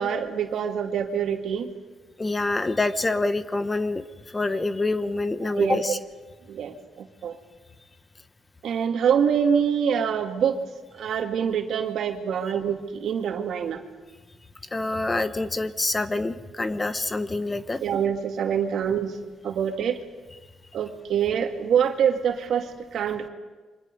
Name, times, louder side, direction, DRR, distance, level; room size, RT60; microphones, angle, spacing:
voice 1, 0.0-1.7 5.4-5.9 6.5-7.4 8.6-10.6 10.9-13.8 17.8-19.2 19.4-20.0 20.7-23.3, right 8 dB, 70° right, 4 dB, 2.3 m, -25 dB
voice 2, 2.2-4.0 4.3-6.0 14.7-17.8, left 2 dB, 20° left, 12 dB, 1.1 m, -26 dB
28.5 x 24.0 x 5.4 m, 1.3 s
cardioid pair, 90°, 0 cm